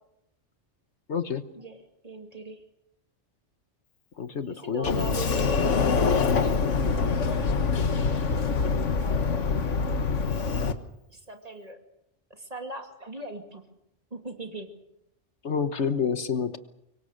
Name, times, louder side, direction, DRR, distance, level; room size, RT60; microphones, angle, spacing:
voice 1, 1.1-1.4 4.2-5.2 15.4-16.6, left 6 dB, 70° left, 10 dB, 1.5 m, -28 dB
voice 2, 2.0-2.6 4.5-6.6 6.9-8.4 9.6-9.8 11.1-11.8 12.3-13.6 14.1-14.7, right 2 dB, 30° right, 4 dB, 2.7 m, -40 dB
Sliding door, 4.8-10.7, left 5 dB, 85° left, 1.7 m, -25 dB
25.0 x 23.0 x 6.6 m, 0.81 s
omnidirectional pair, 1.2 m